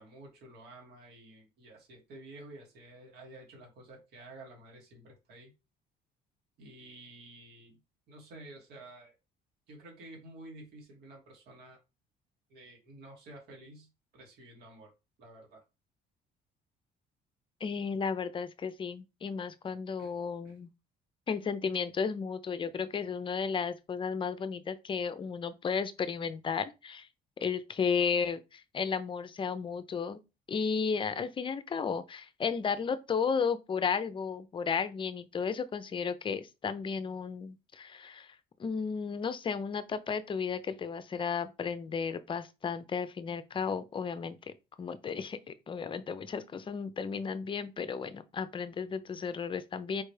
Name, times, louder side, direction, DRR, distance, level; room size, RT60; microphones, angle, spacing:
voice 1, 0.0-5.5 6.6-7.8 8.1-9.2 9.7-11.8 12.5-13.9 14.1-14.9 15.2-15.6 20.0-20.1 20.4-20.6, right 2 dB, 75° right, 2.1 m, -51 dB
voice 2, 17.6-20.7 21.3-27.1 27.4-30.2 30.5-44.4 44.8-50.0, left 6 dB, 30° left, 0.5 m, -34 dB
4.6 x 3.3 x 3.2 m
cardioid pair, 110°, 17 cm